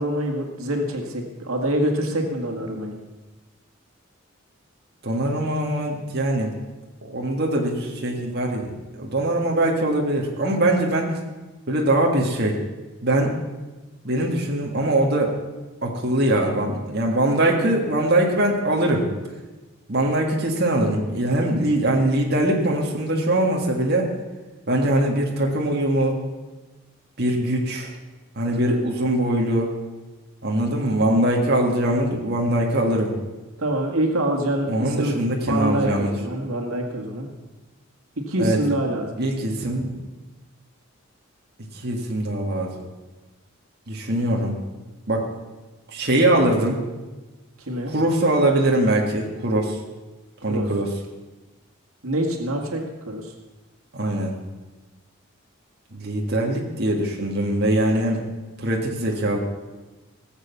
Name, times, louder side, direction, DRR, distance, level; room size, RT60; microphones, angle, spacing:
voice 1, 0.0-2.9 28.5-28.8 33.6-35.2 35.5-37.3 38.3-39.1 47.7-47.9 50.5-50.7 52.0-53.3, right 1 dB, 85° right, 2 dB, 1.9 m, -25 dB
voice 2, 5.0-6.5 7.1-11.2 11.7-12.6 13.0-13.3 14.0-15.3 15.8-19.1 19.9-24.1 24.7-26.2 27.2-27.9 28.4-29.7 30.4-33.1 34.7-36.1 38.4-38.6 39.2-39.9 41.7-42.7 43.9-44.6 45.1-45.3 45.9-46.8 47.9-49.8 50.4-50.9 53.9-54.4 55.9-58.2 58.6-59.4, right 1 dB, 50° right, 0 dB, 1.7 m, -22 dB
18.0 x 7.4 x 7.0 m, 1.2 s
head